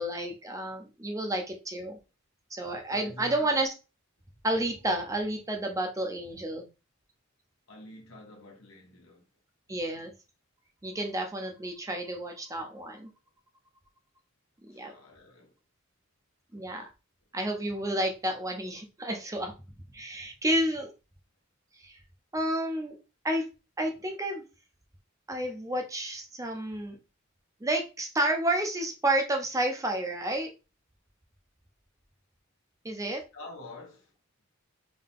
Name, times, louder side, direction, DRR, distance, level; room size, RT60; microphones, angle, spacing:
voice 1, 0.0-2.0 2.5-3.7 4.4-6.7 9.7-10.1 10.8-13.1 14.7-14.9 16.5-16.8 17.3-19.5 19.9-20.9 21.8-22.0 22.3-23.0 23.2-23.4 23.8-24.4 25.3-27.0 27.6-30.5 32.8-33.2, right 1 dB, 15° right, 0.7 m, -30 dB
voice 2, 2.9-3.5 7.7-9.2 14.7-15.5 33.3-34.1, left 2 dB, 80° left, 1.4 m, -47 dB
3.8 x 2.7 x 3.6 m
head